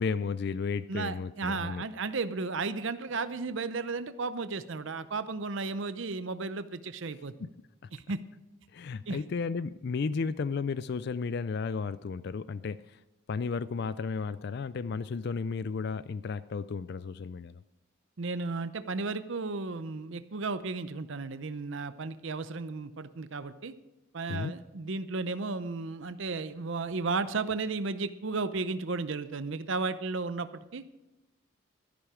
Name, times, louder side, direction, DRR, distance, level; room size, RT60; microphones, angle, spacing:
voice 1, 0.0-1.8 7.8-7.9 8.7-13.0 13.3-17.6 24.3-24.6, left 5 dB, 50° left, 16 dB, 0.4 m, -33 dB
voice 2, 0.9-7.3 7.9-8.2 9.1-9.2 18.2-23.7 24.1-30.8, right 3 dB, 65° right, 12 dB, 0.7 m, -34 dB
13.5 x 11.0 x 5.0 m, 0.97 s
head